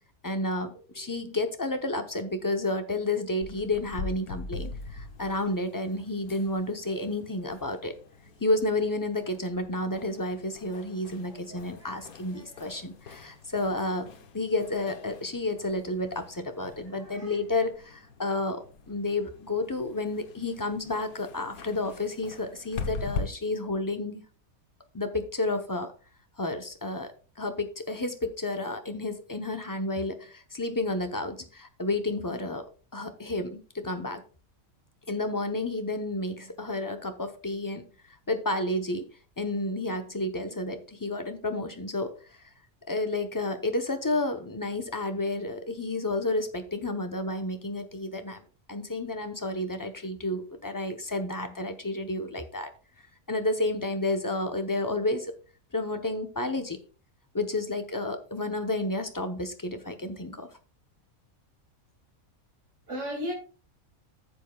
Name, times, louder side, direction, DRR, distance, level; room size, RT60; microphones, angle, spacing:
voice 1, 0.2-8.0 8.4-14.1 14.3-24.2 24.9-25.9 26.4-32.7 32.9-34.2 35.1-37.9 38.3-39.1 39.4-42.5 42.9-48.4 48.7-52.7 53.3-55.3 55.7-56.8 57.3-60.5, left 2 dB, 20° left, 0.6 m, -31 dB
sound 1, 3.4-23.2, left 4 dB, 90° left, 1.5 m, -43 dB
voice 2, 11.2-12.8 16.6-17.4 62.9-63.3, equal, 60° right, 2.3 m, -40 dB
13.5 x 7.5 x 2.3 m
omnidirectional pair, 1.5 m